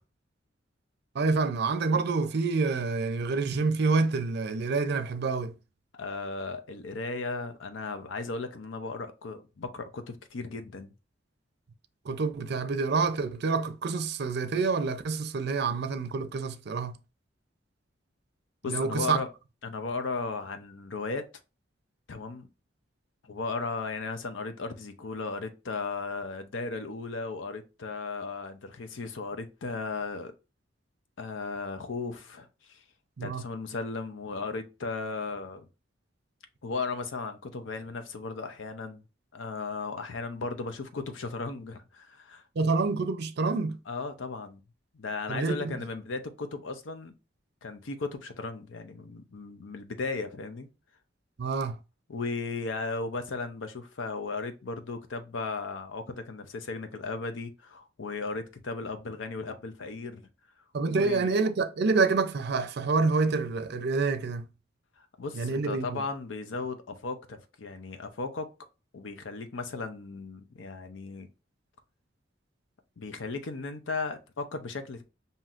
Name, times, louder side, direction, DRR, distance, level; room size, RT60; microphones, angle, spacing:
voice 1, 1.1-5.5 12.1-16.9 18.7-19.2 33.2-33.4 42.6-43.8 45.3-45.8 51.4-51.8 60.7-64.5 65.4-66.0, right 4 dB, 60° right, 0.5 m, -27 dB
voice 2, 5.9-10.9 18.6-19.3 19.6-21.3 22.1-22.5 23.2-30.3 31.2-32.8 33.2-35.7 36.6-39.0 39.3-42.4 43.9-44.6 44.9-47.1 47.6-50.7 52.1-60.3 60.9-61.3 65.0-68.5 68.9-71.3 73.0-75.0, left 3 dB, 85° left, 0.6 m, -36 dB
5.6 x 2.7 x 2.4 m
head